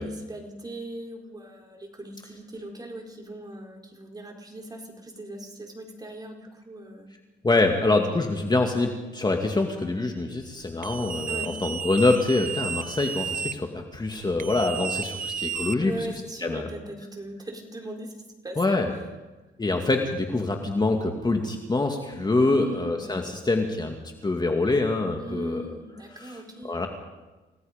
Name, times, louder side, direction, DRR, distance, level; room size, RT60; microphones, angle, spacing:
voice 1, 0.0-7.1 11.3-11.5 15.8-18.1 18.4-18.8 22.4-23.0 25.2-26.9, right 1 dB, 20° right, 1 dB, 4.5 m, -39 dB
voice 2, 7.4-16.1 16.4-16.7 18.6-18.9 19.6-25.6 26.1-26.9, left 2 dB, 20° left, 3 dB, 2.3 m, -25 dB
sound 1, 10.8-13.5 14.4-16.2, right 7 dB, 45° right, 1.1 m, -32 dB
29.5 x 17.5 x 5.3 m, 1.2 s
cardioid pair, 90°, 20 cm